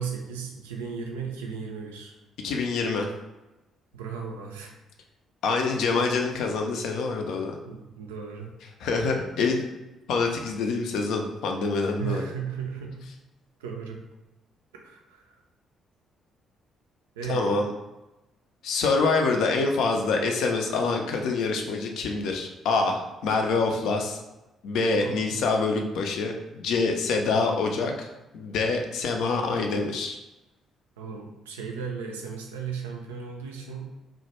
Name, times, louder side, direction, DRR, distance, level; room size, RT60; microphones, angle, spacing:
voice 1, 0.0-2.1 3.9-4.7 7.7-8.5 12.0-13.0 13.6-14.0 14.8-15.2 17.2-17.5 25.0-25.3 31.0-34.0, right 6 dB, 80° right, 1 dB, 0.3 m, -35 dB
voice 2, 2.4-3.1 5.4-7.6 8.8-9.7 10.1-12.2 17.3-17.7 18.6-24.2 24.6-28.1 28.3-30.2, left 4 dB, 65° left, 3 dB, 0.3 m, -26 dB
2.1 x 2.1 x 2.9 m, 1.0 s
figure-of-eight pair, 45°, 0 cm